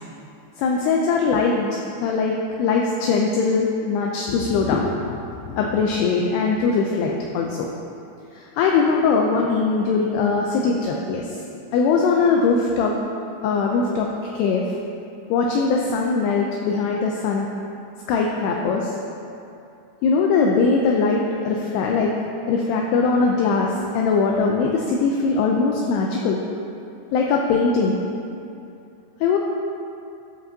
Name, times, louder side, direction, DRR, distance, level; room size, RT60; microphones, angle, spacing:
voice 1, 0.6-1.7 2.0-7.7 8.4-11.4 11.7-13.0 13.4-14.1 14.3-14.6 15.3-17.5 18.1-18.9 20.0-22.2 22.5-26.4 27.1-28.0 29.2-29.4, left 4 dB, 85° left, 0 dB, 2.4 m, -21 dB
15.0 x 5.2 x 2.7 m, 2.6 s
omnidirectional pair, 5.1 m